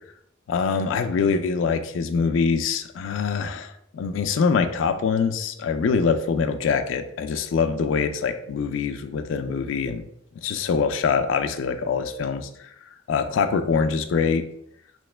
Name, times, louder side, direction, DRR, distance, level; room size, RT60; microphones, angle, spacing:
voice 1, 0.5-10.0 10.4-12.5 13.1-14.4, left 5 dB, 90° left, 8 dB, 0.3 m, -24 dB
3.0 x 2.8 x 3.2 m, 0.74 s
head